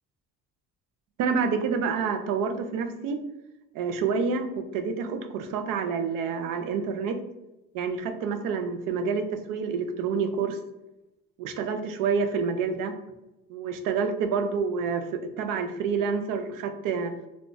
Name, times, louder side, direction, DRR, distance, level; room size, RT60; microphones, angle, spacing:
voice 1, 1.2-3.2 3.7-7.2 7.7-10.6 11.4-12.9 13.5-17.1, right 5 dB, 85° right, 7 dB, 0.5 m, -28 dB
2.4 x 2.3 x 3.7 m, 0.97 s
cardioid pair, 160°, 31 cm